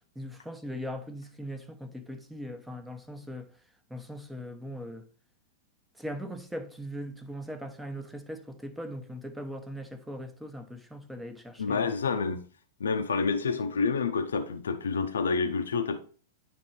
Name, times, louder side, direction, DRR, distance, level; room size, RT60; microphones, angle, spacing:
voice 1, 0.2-3.5 3.9-5.1 6.0-11.8, equal, 5° right, 0.9 m, -40 dB
voice 2, 11.6-12.4 12.8-16.0, left 5 dB, 85° left, 0.6 m, -28 dB
9.4 x 3.2 x 4.3 m
hypercardioid pair, 110°, 0 cm